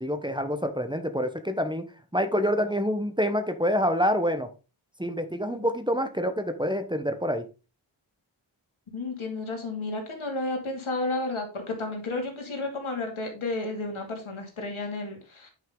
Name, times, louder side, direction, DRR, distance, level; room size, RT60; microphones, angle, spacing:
voice 1, 0.0-1.8 2.1-4.5 5.0-7.4, equal, 10° right, 7 dB, 1.0 m, -27 dB
voice 2, 8.9-15.5, left 2 dB, 85° left, 2 dB, 2.5 m, -32 dB
9.2 x 5.6 x 3.7 m, 0.32 s
wide cardioid pair, 85°, 48 cm